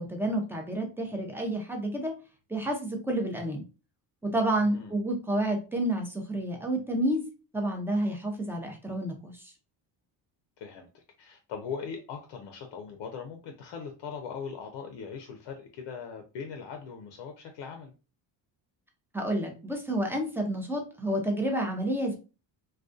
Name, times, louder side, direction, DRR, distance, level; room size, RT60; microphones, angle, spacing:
voice 1, 0.0-2.1 2.5-3.7 4.2-7.2 7.5-9.5 19.1-22.2, right 1 dB, 5° right, 2 dB, 0.5 m, -30 dB
voice 2, 4.6-5.0 10.6-17.9, left 6 dB, 70° left, 4 dB, 0.6 m, -40 dB
2.3 x 2.3 x 2.4 m, 0.32 s
cardioid pair, 120°, 44 cm